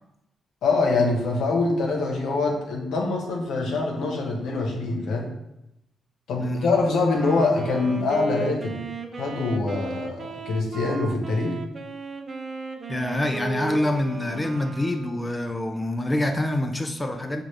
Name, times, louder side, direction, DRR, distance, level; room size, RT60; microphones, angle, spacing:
voice 1, 0.6-5.3 6.3-8.8 9.2-11.6, left 3 dB, 85° left, 0.9 m, -24 dB
voice 2, 6.4-6.7 12.9-17.4, left 1 dB, 15° left, 0.4 m, -26 dB
Wind instrument woodwind instrument, 7.0-15.7, right 4 dB, 45° right, 0.5 m, -36 dB
5.7 x 2.4 x 3.2 m
cardioid pair, 85°, 0 cm